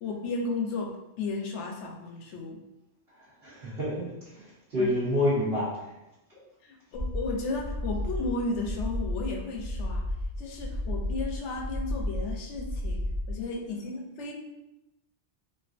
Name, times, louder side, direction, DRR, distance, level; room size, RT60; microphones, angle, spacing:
voice 1, 0.0-2.6 4.8-4.9 6.6-10.1 10.4-14.3, left 3 dB, 90° left, 1 dB, 0.9 m, -34 dB
voice 2, 3.4-5.7, left 1 dB, 65° right, -13 dB, 1.3 m, -28 dB
sound 1, 6.9-13.4, left 1 dB, 15° right, 0.9 m, -33 dB
3.3 x 2.5 x 2.4 m, 0.94 s
omnidirectional pair, 1.2 m